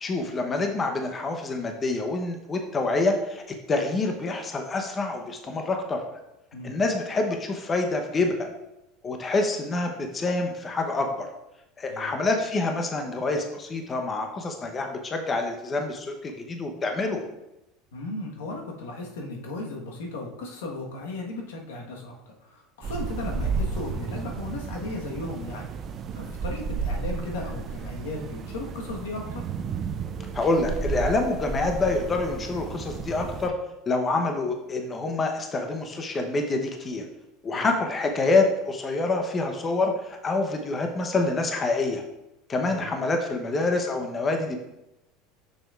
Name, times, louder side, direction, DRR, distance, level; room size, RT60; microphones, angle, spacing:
voice 1, 0.0-3.4 3.7-6.0 6.6-8.5 9.0-11.3 11.8-17.2 30.3-33.5 33.9-37.0 37.4-42.0 42.5-44.6, left 3 dB, 30° left, 4 dB, 0.8 m, -26 dB
voice 2, 17.9-22.1 22.4-25.7 26.1-29.4 37.5-37.7 42.6-42.9, left 2 dB, 90° left, 0 dB, 1.3 m, -36 dB
sound 1, 22.8-33.5, right 5 dB, 40° right, 0.5 m, -33 dB
6.5 x 6.1 x 2.4 m, 0.89 s
supercardioid pair, 100°, 0 cm